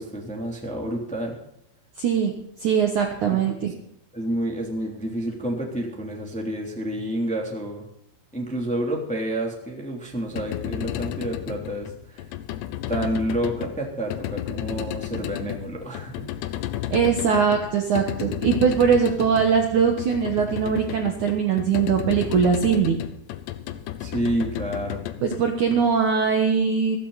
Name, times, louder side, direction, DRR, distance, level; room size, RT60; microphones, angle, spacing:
voice 1, 0.0-1.4 3.3-3.6 4.1-7.8 8.3-12.2 12.9-16.3 24.0-25.0, right 1 dB, 5° left, 0 dB, 1.6 m, -29 dB
voice 2, 2.0-2.3 2.6-3.7 16.9-23.0 25.2-27.0, right 6 dB, 85° right, 3 dB, 1.7 m, -21 dB
sound 1, 10.1-26.3, left 12 dB, 75° left, 2.7 m, -33 dB
15.5 x 15.0 x 4.1 m, 0.78 s
omnidirectional pair, 5.7 m